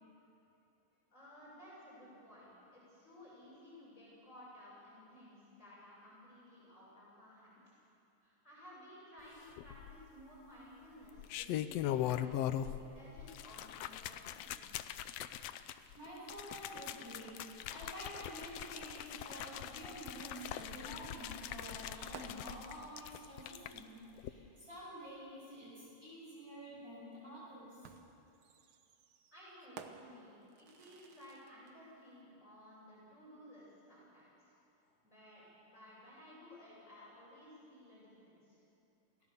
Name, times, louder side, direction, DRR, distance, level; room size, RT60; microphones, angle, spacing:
voice 1, 1.1-7.6 8.2-12.2 12.7-14.7 29.3-34.5 35.0-38.6, left 1 dB, 20° left, -7 dB, 6.7 m, -56 dB
Shaking water bottle, 9.6-10.2 11.0-12.9 13.2-23.8 24.2-24.3, left 11 dB, 80° left, 1.4 m, -41 dB
voice 2, 15.9-27.9, equal, 25° right, -7 dB, 8.2 m, -49 dB
sound 1, 20.6-24.2 25.7-25.8 27.8-31.7, right 6 dB, 65° right, 1.3 m, -56 dB
28.5 x 16.0 x 7.0 m, 2.8 s
omnidirectional pair, 3.6 m